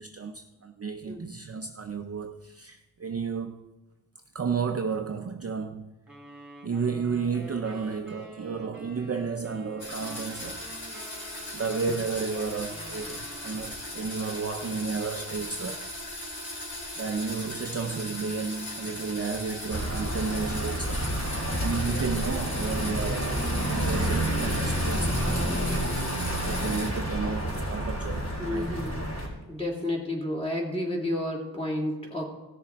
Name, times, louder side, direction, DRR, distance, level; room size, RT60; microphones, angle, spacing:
voice 1, 0.0-3.7 4.3-5.9 6.6-10.7 11.5-15.8 17.0-21.1 21.6-25.5 26.4-28.8, right 5 dB, 35° right, 0.5 m, -32 dB
sound 1, 6.1-14.0, right 1 dB, 5° right, 3.2 m, -48 dB
sound 2, 9.8-26.9, left 1 dB, 75° left, 3.9 m, -38 dB
sound 3, 19.7-29.3, right 1 dB, 35° left, 4.2 m, -29 dB
voice 2, 28.4-29.1 29.5-32.2, left 1 dB, 10° left, 2.8 m, -31 dB
17.0 x 6.6 x 4.1 m
wide cardioid pair, 105°, 46 cm